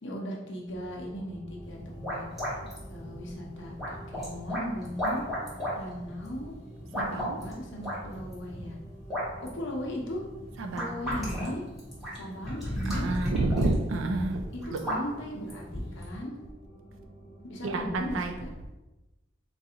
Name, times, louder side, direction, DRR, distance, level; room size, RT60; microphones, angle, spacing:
voice 1, 0.0-2.2 2.9-5.2 5.8-6.6 6.9-8.8 9.5-10.2 10.7-11.6 12.1-13.6 14.5-16.3 17.4-18.5, equal, 65° left, -1 dB, 0.8 m, -38 dB
sound 1, 0.7-18.3, right 1 dB, 30° left, 0.7 m, -49 dB
sound 2, 1.6-16.2, equal, ahead, 1.2 m, -36 dB
voice 2, 7.0-7.4 10.6-11.0 12.9-14.4 14.7-14.8 17.6-18.3, right 2 dB, 75° right, 5 dB, 0.4 m, -29 dB
3.9 x 2.4 x 2.8 m, 1.1 s
head